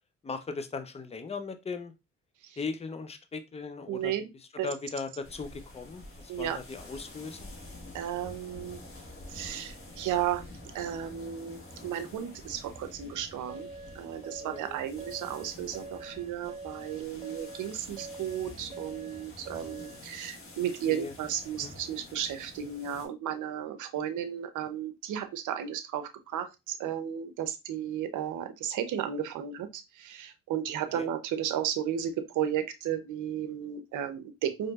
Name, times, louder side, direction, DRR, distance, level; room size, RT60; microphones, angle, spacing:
voice 1, 0.2-1.9 2.6-4.1 4.6-7.5 14.4-14.8 17.1-17.4 20.9-21.1 21.6-21.7 30.9-31.1, left 4 dB, 20° left, 9 dB, 0.6 m, -38 dB
voice 2, 3.9-4.2 4.6-4.7 6.3-6.6 7.9-8.8 9.3-10.5 10.7-13.7 13.9-34.7, right 10 dB, 80° right, 8 dB, 0.7 m, -34 dB
sound 1, 5.2-23.1, left 2 dB, 45° left, 1.6 m, -48 dB
sound 2, 13.5-20.0, right 3 dB, 25° right, 0.4 m, -45 dB
4.3 x 3.1 x 2.4 m, 0.23 s
cardioid pair, 90°, 30 cm